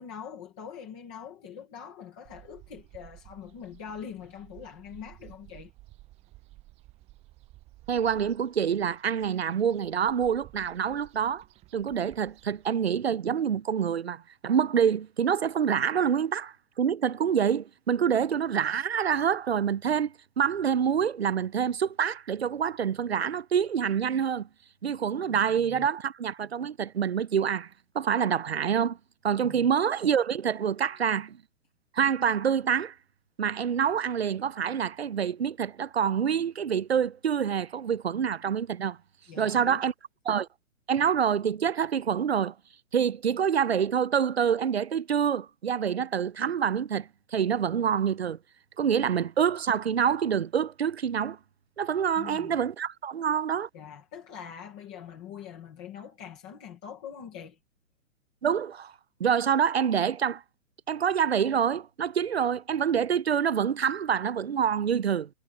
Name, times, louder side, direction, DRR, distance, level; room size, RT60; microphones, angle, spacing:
voice 1, 0.0-5.7 25.1-25.9 29.4-29.7 39.3-39.8 52.2-52.6 53.7-57.6, left 8 dB, 5° left, 0.7 m, -43 dB
sound 1, 2.2-12.8, right 18 dB, 15° right, 7.3 m, -54 dB
voice 2, 7.9-11.4 11.7-24.5 24.8-27.7 27.9-29.0 29.2-31.4 31.9-32.9 33.4-39.0 39.4-39.9 40.3-40.5 40.9-42.5 42.9-48.4 48.8-51.4 51.8-53.7 58.4-58.9 59.2-60.4 60.9-65.3, right 8 dB, 45° right, 0.5 m, -26 dB
hypercardioid pair, 180°, 44 cm